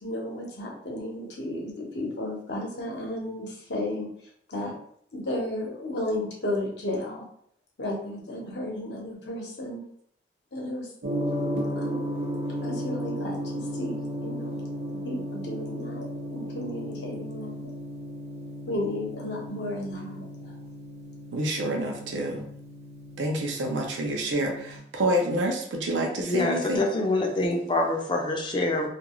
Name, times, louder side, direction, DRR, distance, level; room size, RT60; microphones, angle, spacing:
voice 1, 0.0-4.1 4.5-4.8 5.1-7.2 7.8-9.8 10.5-10.9 11.7-12.1 12.6-14.6 14.9-17.7 18.7-20.2, left 1 dB, 70° left, -2 dB, 0.8 m, -33 dB
Gong, 11.0-24.8, equal, 65° right, 0.8 m, -35 dB
voice 2, 21.3-22.4 23.2-26.8, right 1 dB, 90° right, 2 dB, 0.5 m, -28 dB
voice 3, 26.1-28.9, left 2 dB, 25° left, 2 dB, 0.4 m, -26 dB
2.4 x 2.3 x 2.9 m, 0.66 s
head